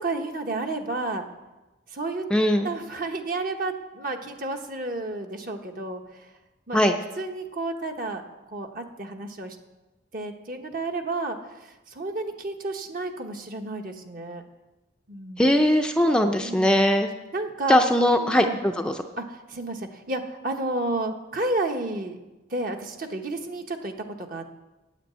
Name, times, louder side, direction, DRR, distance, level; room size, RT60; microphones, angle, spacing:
voice 1, 0.0-1.2 1.9-2.2 2.6-6.2 6.7-6.8 7.2-8.2 8.5-9.6 10.1-11.4 11.9-14.4 15.1-15.5 16.4-16.9 17.3-17.8 18.2-18.6 19.2-22.2 22.5-24.5, right 2 dB, 50° right, 4 dB, 1.2 m, -31 dB
voice 2, 2.3-2.7 6.7-6.9 15.4-17.1 17.7-18.9, left 1 dB, 5° left, 4 dB, 0.5 m, -20 dB
9.3 x 8.9 x 8.1 m, 1.1 s
head